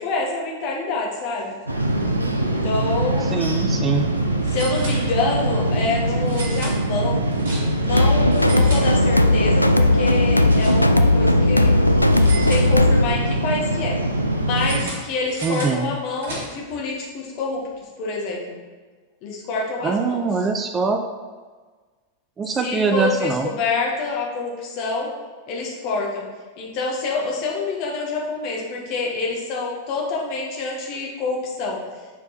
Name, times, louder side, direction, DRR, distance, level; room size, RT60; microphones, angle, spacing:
voice 1, 0.0-1.5 2.4-3.3 4.5-7.3 7.8-11.7 12.3-14.0 14.4-17.6 18.0-18.6 19.2-20.3 22.6-25.1 25.5-26.2 26.6-31.8, left 3 dB, 45° left, -2 dB, 1.6 m, -27 dB
sound 1, 1.7-14.9, right 1 dB, 80° right, 0.7 m, -23 dB
voice 2, 3.2-4.1 15.4-15.9 19.8-21.0 22.4-23.5, right 5 dB, 20° right, 5 dB, 0.5 m, -23 dB
sound 2, 4.4-5.5 6.2-7.9 8.3-9.4 9.8-11.1 12.1-13.2 14.5-16.8, right 3 dB, 60° right, 1.9 m, -36 dB
sound 3, 7.9-13.1, left 1 dB, 85° left, 0.3 m, -17 dB
7.5 x 4.5 x 4.3 m, 1.4 s
figure-of-eight pair, 90°, 0 cm